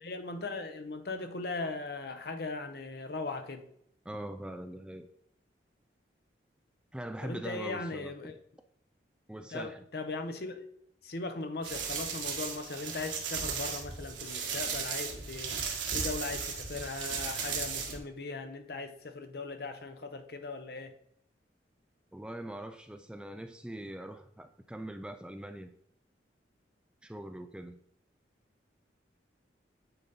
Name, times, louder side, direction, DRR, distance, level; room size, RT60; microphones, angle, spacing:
voice 1, 0.0-3.7 7.2-8.3 9.5-10.6 11.0-15.6 15.9-20.9, left 3 dB, 55° left, 0.7 m, -39 dB
voice 2, 4.1-5.1 6.9-8.3 9.3-9.8 22.1-25.7 27.0-27.8, right 1 dB, 5° right, 0.3 m, -42 dB
sound 1, 11.6-18.0, right 6 dB, 85° right, 1.4 m, -36 dB
8.9 x 4.0 x 3.9 m
head